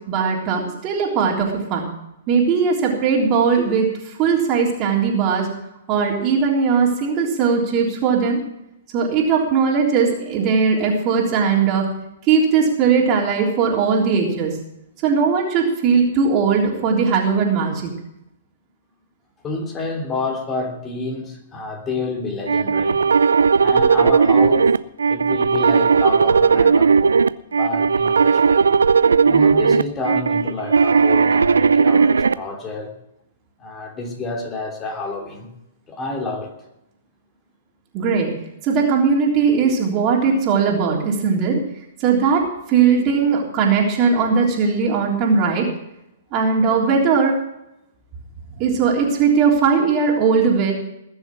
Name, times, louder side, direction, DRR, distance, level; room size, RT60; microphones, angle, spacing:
voice 1, 0.1-1.9 2.3-5.5 5.9-8.4 8.9-11.9 12.2-14.5 15.0-17.9 37.9-38.3 38.6-41.6 42.0-45.7 46.3-47.3 48.6-50.7, right 5 dB, 35° right, -1 dB, 3.5 m, -19 dB
voice 2, 19.4-23.0 23.6-24.8 25.1-27.1 27.5-28.7 29.2-32.9 33.6-35.5 35.9-36.5, left 2 dB, 20° left, 2 dB, 3.1 m, -29 dB
sound 1, 22.5-32.3, right 5 dB, 85° right, 0.5 m, -16 dB
20.0 x 7.0 x 6.2 m, 0.86 s
hypercardioid pair, 120°, 0 cm